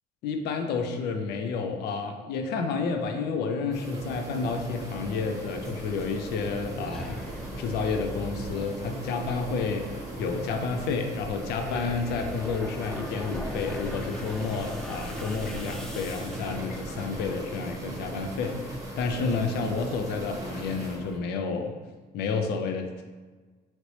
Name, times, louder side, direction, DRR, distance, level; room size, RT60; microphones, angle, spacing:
voice 1, 0.2-7.2 7.6-9.9 10.2-21.7 22.1-23.0, left 4 dB, 75° left, 5 dB, 0.4 m, -30 dB
sound 1, 3.7-21.0, right 2 dB, 20° right, 0.8 m, -38 dB
sound 2, 5.5-21.2, left 1 dB, 5° left, 0.3 m, -41 dB
3.0 x 2.9 x 2.8 m, 1.4 s
cardioid pair, 110°, 17 cm